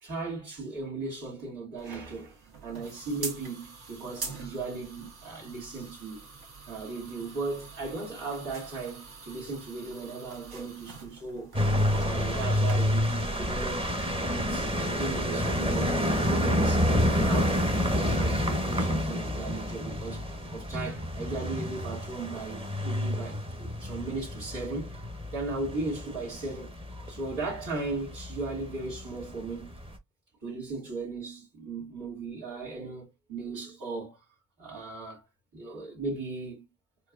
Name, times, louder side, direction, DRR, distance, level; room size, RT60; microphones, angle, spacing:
voice 1, 0.0-6.2 6.7-11.5 12.0-13.9 14.3-16.0 16.3-25.0 25.3-29.8 30.4-34.2 34.6-35.2 35.5-36.6, right 3 dB, 70° right, 2.2 m, -37 dB
sound 1, 1.8-12.7, right 4 dB, 55° right, 1.6 m, -45 dB
sound 2, 11.5-30.0, left 1 dB, 10° right, 0.9 m, -29 dB
4.5 x 2.3 x 2.3 m
supercardioid pair, 70°, 46 cm